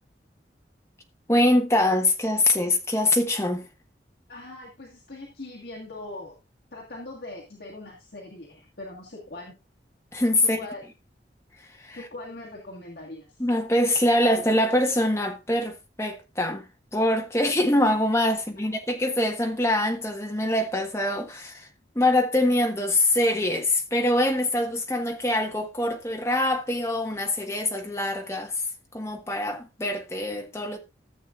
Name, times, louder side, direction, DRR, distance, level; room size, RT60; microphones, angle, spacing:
voice 1, 1.3-3.7 10.1-10.6 11.8-12.0 13.4-16.6 16.9-21.7 21.9-28.5 28.9-30.8, left 1 dB, 15° left, 1.3 m, -24 dB
voice 2, 4.3-6.4 6.7-9.6 10.4-10.8 11.9-13.3 18.4-18.7, left 2 dB, 65° left, 1.8 m, -41 dB
14.0 x 7.5 x 2.5 m
head